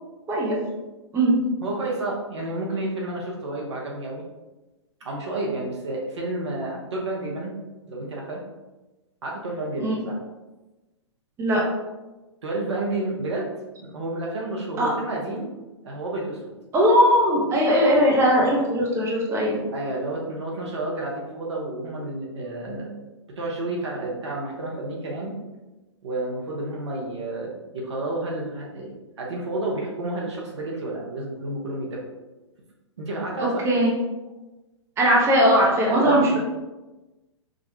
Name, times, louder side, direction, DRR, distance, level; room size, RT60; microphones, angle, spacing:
voice 1, 1.6-4.2 5.0-7.5 7.8-8.4 9.2-10.2 12.4-13.5 13.8-15.5 15.8-16.5 19.7-22.9 23.4-25.4 26.0-32.0 33.0-33.6 35.9-36.4, right 2 dB, 65° right, -2 dB, 1.0 m, -30 dB
voice 2, 16.7-19.6 33.6-33.9 35.0-36.4, equal, 15° right, -4 dB, 0.8 m, -19 dB
5.1 x 2.3 x 2.8 m, 1.1 s
figure-of-eight pair, 110°, 16 cm